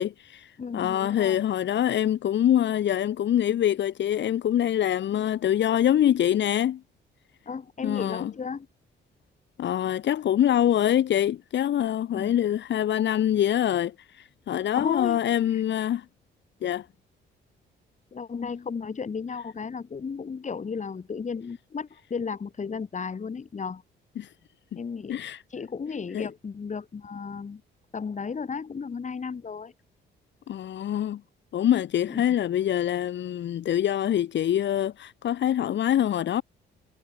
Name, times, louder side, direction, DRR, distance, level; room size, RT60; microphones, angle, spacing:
voice 1, 0.0-6.8 7.8-8.3 9.6-16.1 16.6-16.9 24.2-24.3 25.1-25.4 26.1-26.3 30.5-31.2 31.5-36.4, left 11 dB, 65° left, 1.8 m, -25 dB
voice 2, 0.6-1.4 7.5-8.7 12.1-12.3 14.7-15.2 15.5-15.6 18.1-23.8 24.8-25.2 25.5-27.6 27.9-29.7 32.1-32.2, left 5 dB, 35° left, 4.3 m, -34 dB
cardioid pair, 90°, 20 cm